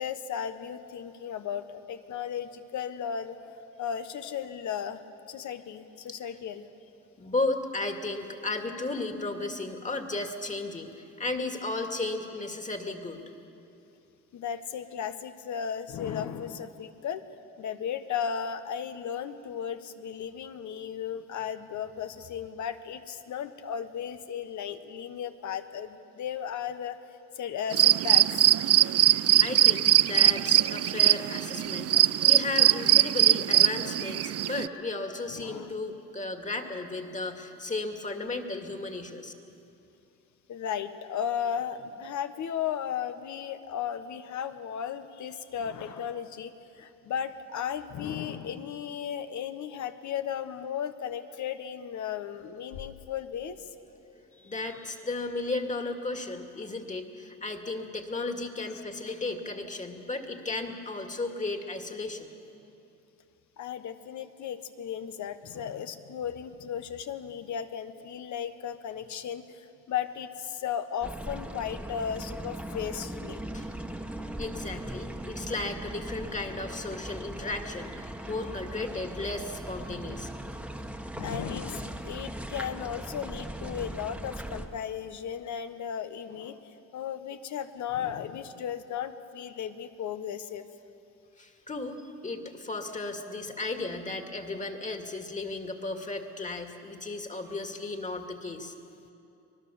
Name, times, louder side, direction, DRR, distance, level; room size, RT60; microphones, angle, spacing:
voice 1, 0.0-5.0 5.3-6.7 14.3-17.2 17.6-27.0 27.3-28.3 31.9-32.3 35.3-35.8 40.5-53.7 59.9-60.0 63.6-73.4 81.1-90.6, left 8 dB, 70° left, 10 dB, 1.3 m, -35 dB
voice 2, 7.2-13.2 29.4-39.3 54.3-62.3 73.5-73.7 74.4-80.3 91.4-98.7, left 2 dB, 25° left, 5 dB, 2.2 m, -34 dB
sound 1, 27.7-34.7, right 13 dB, 55° right, 0.5 m, -21 dB
sound 2, 71.0-84.7, right 1 dB, 5° right, 1.5 m, -39 dB
25.0 x 19.5 x 7.1 m, 2.7 s
cardioid pair, 90°, 30 cm